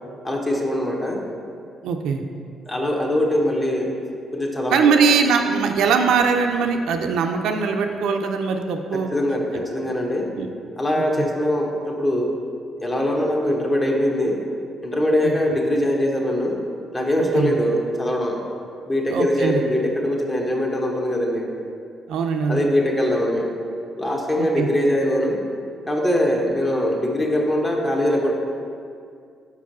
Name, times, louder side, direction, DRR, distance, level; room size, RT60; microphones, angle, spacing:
voice 1, 0.2-1.2 2.7-3.9 4.3-5.0 8.9-10.3 10.8-12.4 12.8-14.4 14.8-16.6 16.9-18.4 18.9-21.5 22.5-23.5 24.0-25.4 25.9-28.3, left 1 dB, 25° left, 0 dB, 1.2 m, -22 dB
voice 2, 1.8-2.2 4.7-9.1 10.4-10.5 11.2-11.3 15.2-15.3 17.3-17.6 19.1-19.6 22.1-22.6 24.4-24.7, right 5 dB, 80° right, 4 dB, 0.5 m, -21 dB
5.3 x 4.8 x 6.0 m, 2.3 s
cardioid pair, 90°, 0 cm